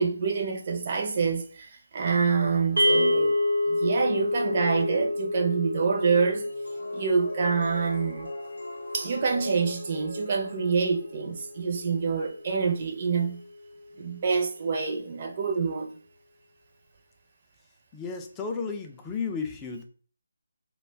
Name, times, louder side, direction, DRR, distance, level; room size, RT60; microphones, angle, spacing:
voice 1, 0.0-3.4 3.7-6.4 6.9-8.3 8.9-13.4 14.0-15.9, right 5 dB, 40° right, 0.6 m, -26 dB
sound 1, 2.7-4.0 6.3-11.6, left 1 dB, 85° left, 0.7 m, -41 dB
sound 2, 2.8-13.1, left 1 dB, 80° right, 0.6 m, -30 dB
voice 2, 17.9-19.8, left 5 dB, 15° left, 0.4 m, -33 dB
2.4 x 2.2 x 3.3 m
figure-of-eight pair, 155°, 0 cm